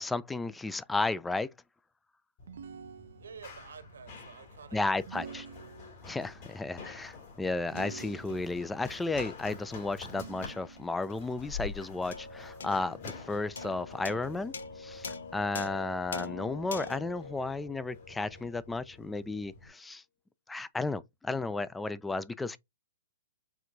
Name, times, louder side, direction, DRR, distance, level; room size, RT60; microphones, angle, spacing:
voice 1, 0.0-1.5 4.7-5.5 6.0-15.1 15.3-20.0 20.5-22.6, left 3 dB, 5° left, 0.3 m, -33 dB
Run, 2.4-19.7, left 4 dB, 50° left, 2.7 m, -48 dB
sound 1, 2.5-3.6 5.1-6.2 7.7-8.7 10.1-11.1, right 7 dB, 70° right, 0.3 m, -47 dB
voice 2, 3.2-5.3, right 6 dB, 90° right, 1.2 m, -50 dB
sound 2, 12.1-18.7, left 4 dB, 85° left, 0.8 m, -43 dB
4.7 x 3.4 x 2.6 m
hypercardioid pair, 140°, 0 cm